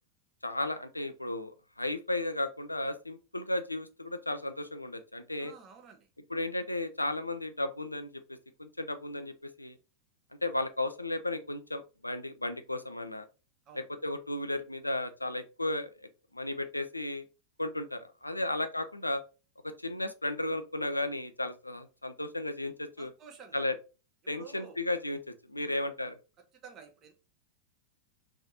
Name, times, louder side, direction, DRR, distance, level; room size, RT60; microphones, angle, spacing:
voice 1, 0.4-5.5 6.3-9.8 10.4-13.3 13.7-17.2 17.6-19.2 19.6-23.1 23.5-23.8 24.3-26.2, left 2 dB, 85° left, 10 dB, 0.3 m, -34 dB
voice 2, 5.4-6.1 13.7-13.8 18.3-18.4 23.0-23.6 24.3-24.8 25.7-25.9 26.6-27.1, right 6 dB, 30° right, 5 dB, 0.7 m, -51 dB
3.3 x 2.7 x 2.6 m, 0.32 s
figure-of-eight pair, 90°, 0 cm